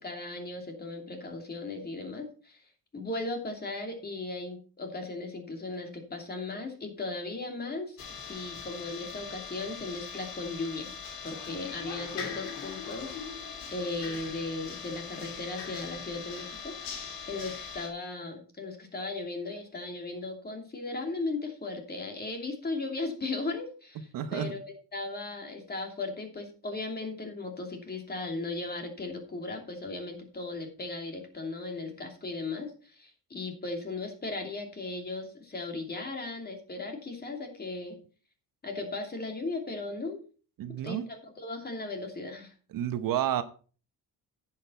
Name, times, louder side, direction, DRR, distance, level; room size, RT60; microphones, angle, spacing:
voice 1, 0.0-2.6 2.9-10.9 11.2-16.7 17.2-24.6 24.9-38.0 38.6-40.2 40.8-42.5, left 3 dB, 30° left, 3 dB, 2.8 m, -37 dB
sound 1, 8.0-17.9, left 6 dB, 85° left, 2.6 m, -41 dB
voice 2, 24.1-24.5 40.6-41.1 42.7-43.4, right 10 dB, 75° right, 11 dB, 1.0 m, -30 dB
10.0 x 7.6 x 4.5 m, 0.38 s
cardioid pair, 125°, 34 cm